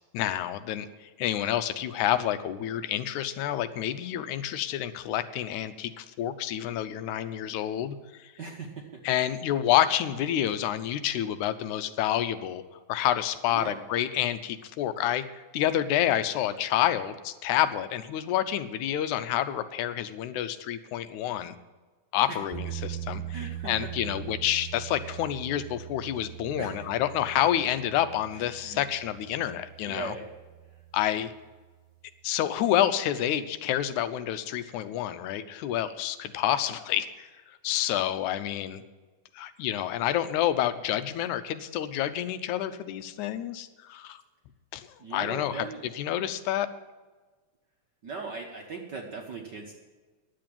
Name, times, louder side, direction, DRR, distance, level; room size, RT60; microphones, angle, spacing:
voice 1, 0.1-8.0 9.1-12.6 12.9-21.6 22.1-23.4 23.7-30.1 30.9-31.3 32.2-38.8 39.3-44.2 44.7-45.7 46.0-46.7, left 11 dB, 85° left, 11 dB, 2.2 m, -28 dB
voice 2, 8.4-9.0 13.5-13.8 22.3-22.4 23.3-24.1 25.0-25.1 26.6-26.9 28.3-28.8 29.8-30.3 30.7-30.8 45.0-45.9 48.0-49.7, right 4 dB, 55° right, 1 dB, 1.3 m, -39 dB
sound 1, 22.5-31.4, right 12 dB, 90° right, 2.8 m, -41 dB
10.5 x 7.7 x 8.9 m, 1.3 s
omnidirectional pair, 3.3 m